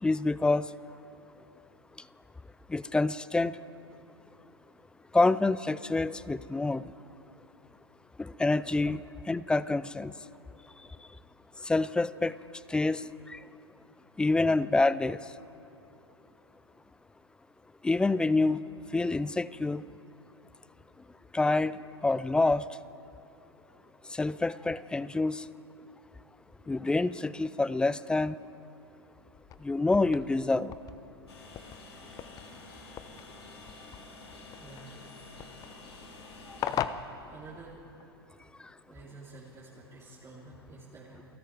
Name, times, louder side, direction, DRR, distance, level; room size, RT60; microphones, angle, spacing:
voice 1, 0.0-0.7 2.7-3.6 5.1-6.8 8.2-9.0 9.3-10.1 11.6-12.3 12.7-13.4 14.2-15.2 17.8-18.6 18.9-19.8 21.3-21.8 22.0-22.6 24.1-25.4 26.7-28.4 29.6-30.7, left 3 dB, 5° left, 18 dB, 0.4 m, -27 dB
sound 1, 29.3-38.0, left 9 dB, 25° left, 0.8 m, -41 dB
Train, 31.3-36.8, left 3 dB, 75° left, 4.1 m, -49 dB
voice 2, 34.6-35.3 35.9-36.3 36.9-37.8 38.9-41.3, right 3 dB, 25° right, -6 dB, 3.1 m, -50 dB
29.0 x 19.0 x 4.9 m, 2.8 s
figure-of-eight pair, 100°, 14 cm